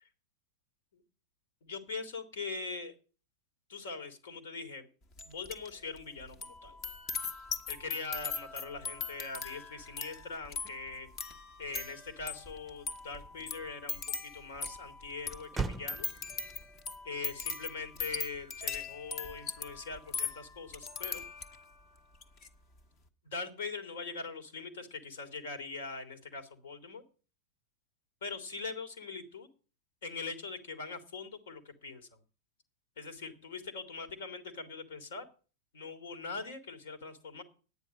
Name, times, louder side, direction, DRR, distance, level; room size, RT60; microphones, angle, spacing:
voice 1, 1.6-2.9 3.7-4.9 5.2-6.8 7.7-11.1 11.6-16.1 17.0-21.2 23.2-27.0 28.2-29.5 30.0-32.1 33.0-35.2 35.7-37.4, left 4 dB, 65° left, 8 dB, 2.2 m, -42 dB
sound 1, 5.2-5.7 6.0-21.7 22.1-22.5, left 5 dB, 35° left, 1.3 m, -40 dB
Motor vehicle (road), 11.4-20.1, right 4 dB, 10° right, 0.8 m, -45 dB
11.0 x 9.4 x 6.2 m, 0.38 s
figure-of-eight pair, 95°, 0 cm